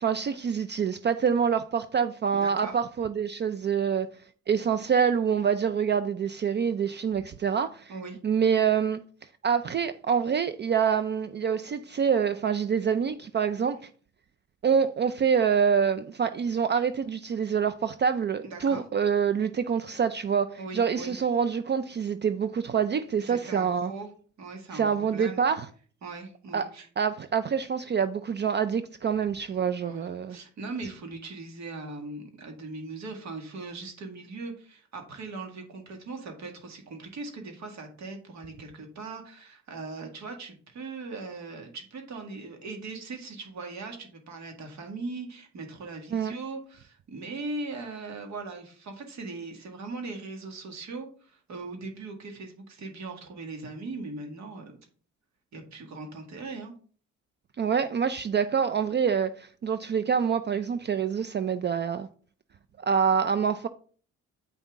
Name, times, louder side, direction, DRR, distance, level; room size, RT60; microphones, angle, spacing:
voice 1, 0.0-4.1 4.5-7.9 8.2-9.0 9.4-13.9 14.6-23.9 24.7-25.7 26.5-26.7 27.0-30.4 46.1-46.3 57.6-62.1 62.8-63.7, right 7 dB, 35° right, 0.4 m, -26 dB
voice 2, 2.3-2.7 7.9-8.2 18.4-18.8 20.6-21.2 23.2-24.1 24.4-24.8 25.1-25.4 26.0-26.9 29.7-54.7 55.5-56.7, right 3 dB, 65° right, 2.0 m, -39 dB
8.0 x 5.6 x 3.6 m
cardioid pair, 90°, 30 cm